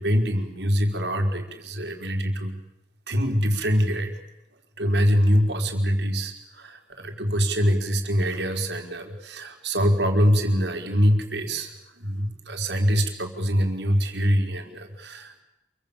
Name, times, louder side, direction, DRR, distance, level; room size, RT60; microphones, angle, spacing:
voice 1, 0.0-2.6 3.1-4.1 4.8-11.7 12.0-15.4, equal, 75° right, 5 dB, 4.6 m, -24 dB
28.0 x 24.0 x 7.2 m, 0.93 s
head